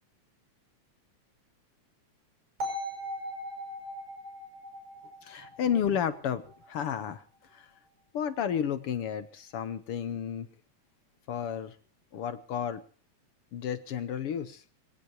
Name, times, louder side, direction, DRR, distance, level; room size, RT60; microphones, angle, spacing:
sound 1, 2.6-6.6, equal, 85° right, 7.2 m, -39 dB
voice 1, 5.2-6.4 6.7-7.2 7.6-7.7 8.1-10.5 11.3-11.7 12.1-12.8 13.5-14.6, left 8 dB, 65° left, 12 dB, 1.6 m, -31 dB
24.5 x 17.5 x 3.0 m, 0.40 s
omnidirectional pair, 3.4 m